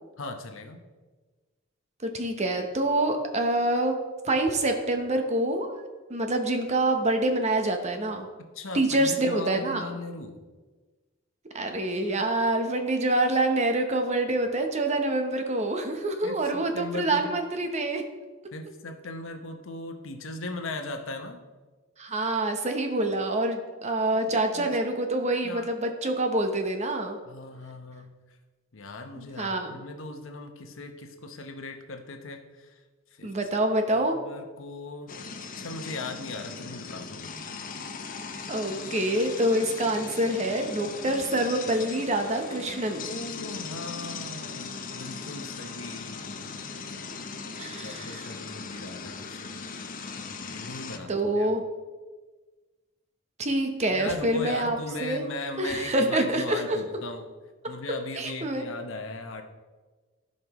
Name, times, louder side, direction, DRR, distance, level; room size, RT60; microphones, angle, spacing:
voice 1, 0.2-0.8 8.4-10.4 16.2-17.4 18.5-21.4 24.3-24.8 25.4-25.7 27.3-28.4 28.7-32.8 33.1-33.3 33.9-35.1 35.6-37.2 43.1-46.6 47.8-49.6 50.2-51.6 53.9-57.2 57.7-59.4, left 2 dB, 70° left, 5 dB, 0.9 m, -38 dB
voice 2, 2.0-3.9 4.2-8.3 8.7-9.9 11.5-18.0 22.0-27.2 29.2-29.7 33.2-34.2 38.5-43.0 47.6-48.3 51.1-51.6 53.4-54.8 55.0-55.2 55.6-56.8 58.2-58.6, right 1 dB, 35° right, 5 dB, 0.9 m, -26 dB
sound 1, 35.1-51.0, left 5 dB, 40° left, 0.7 m, -39 dB
15.5 x 5.3 x 3.0 m, 1.3 s
head